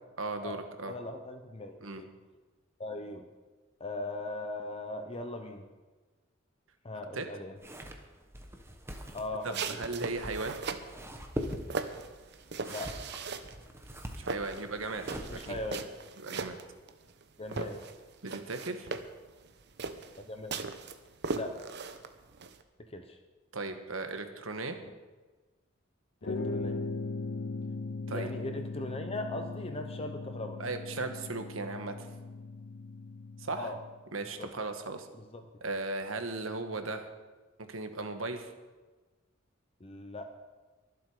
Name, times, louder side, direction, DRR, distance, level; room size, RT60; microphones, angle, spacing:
voice 1, 0.2-0.9 1.8-2.0 7.1-7.2 9.4-10.6 14.1-15.6 16.2-16.6 18.2-18.9 23.5-24.8 28.1-28.3 30.6-32.1 33.4-33.7 34.1-35.1 35.6-37.1 37.7-38.5, right 3 dB, 70° right, 7 dB, 1.4 m, -37 dB
voice 2, 0.9-2.1 2.8-3.3 3.8-5.7 6.8-7.6 9.1-9.8 12.7-13.0 15.3-15.9 17.4-17.8 20.2-20.5 21.3-21.6 22.9-23.2 24.8-24.9 26.2-26.8 28.1-30.6 33.6-33.8 34.4-34.5 35.1-35.5 39.8-40.3, left 2 dB, 30° left, 5 dB, 0.9 m, -39 dB
sound 1, 7.6-15.8, equal, 10° right, 1.3 m, -43 dB
sound 2, 9.4-10.9 11.4-13.6 13.9-17.2 17.5-22.6, right 4 dB, 55° right, 0.9 m, -38 dB
sound 3, 26.2-33.9, left 3 dB, 55° left, 0.7 m, -39 dB
23.0 x 7.8 x 5.0 m, 1.3 s
head